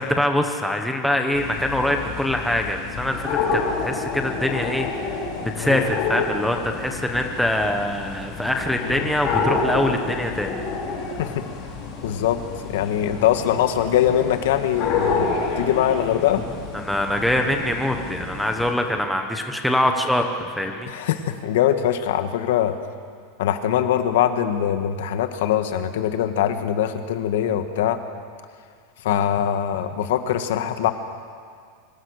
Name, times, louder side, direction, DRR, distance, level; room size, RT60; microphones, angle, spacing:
voice 1, 0.0-5.2 5.6-10.6 16.7-20.9, left 1 dB, ahead, 3 dB, 1.2 m, -24 dB
sound 1, 1.3-18.7, left 4 dB, 35° left, 4.4 m, -29 dB
voice 2, 12.0-12.4 12.7-16.4 20.9-22.8 23.4-28.0 29.0-30.9, left 10 dB, 65° left, 8 dB, 1.8 m, -22 dB
25.0 x 24.5 x 6.6 m, 2.1 s
supercardioid pair, 180°, 0 cm